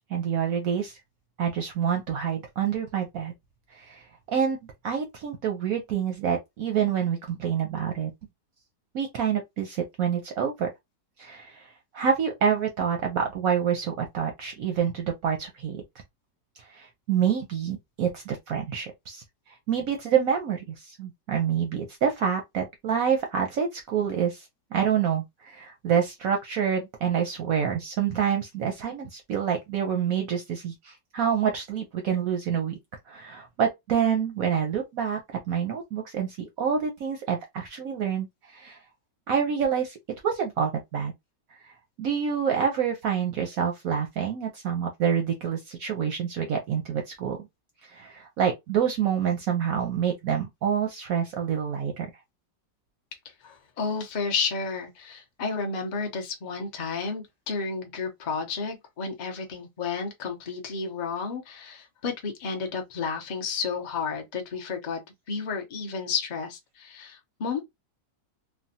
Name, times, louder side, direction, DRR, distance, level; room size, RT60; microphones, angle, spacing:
voice 1, 0.1-1.0 1.4-3.3 3.7-4.0 4.3-8.1 8.9-10.7 11.2-11.7 11.9-15.8 16.7-19.2 19.7-24.5 24.7-32.8 33.1-35.2 35.5-38.8 39.3-40.0 40.2-41.1 41.6-41.7 42.0-47.4 47.9-52.1, right 8 dB, 65° right, 0.9 m, -27 dB
voice 2, 53.4-65.0 65.3-67.6, left 5 dB, 85° left, 0.4 m, -32 dB
3.3 x 2.2 x 2.7 m
omnidirectional pair, 2.0 m